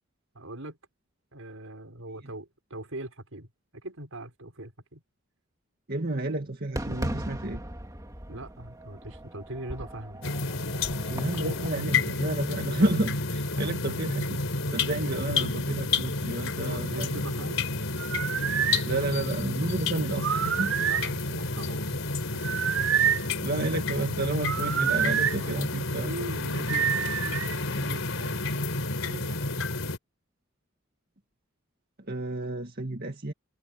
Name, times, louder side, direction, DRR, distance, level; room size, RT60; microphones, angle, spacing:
voice 1, 0.3-0.8 1.3-5.0 8.3-10.3 13.6-13.8 16.6-17.7 20.8-22.5 25.4-25.7 25.9-28.7 29.0-29.6, right 1 dB, 90° right, 5.8 m, -41 dB
voice 2, 5.9-7.6 11.1-14.5 14.7-17.1 18.9-20.7 23.4-26.1 32.1-33.3, right 2 dB, 50° right, 2.0 m, -31 dB
Fireworks, 6.8-11.8, right 1 dB, 15° right, 2.1 m, -38 dB
sound 1, 10.2-30.0, left 3 dB, 80° left, 4.1 m, -30 dB
sound 2, 18.0-18.8 20.2-21.1 22.4-23.3 24.4-25.4 26.7-27.6, right 9 dB, 70° right, 0.4 m, -27 dB
head